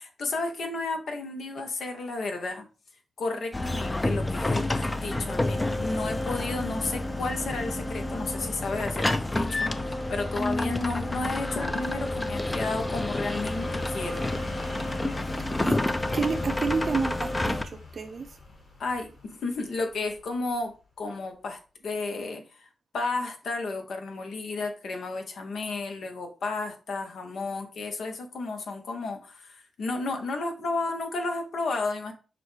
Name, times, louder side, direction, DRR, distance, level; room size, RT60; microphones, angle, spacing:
voice 1, 0.0-2.6 3.2-14.2 18.8-22.7 22.9-32.1, left 3 dB, 75° left, 0.8 m, -33 dB
sound 1, 3.5-17.6, left 2 dB, 25° left, 0.5 m, -29 dB
sound 2, 6.7-20.6 20.9-21.0, left 2 dB, 60° left, 2.2 m, -45 dB
voice 2, 16.1-18.3, right 4 dB, 60° right, 0.5 m, -29 dB
6.1 x 2.2 x 3.2 m
supercardioid pair, 45°, 0 cm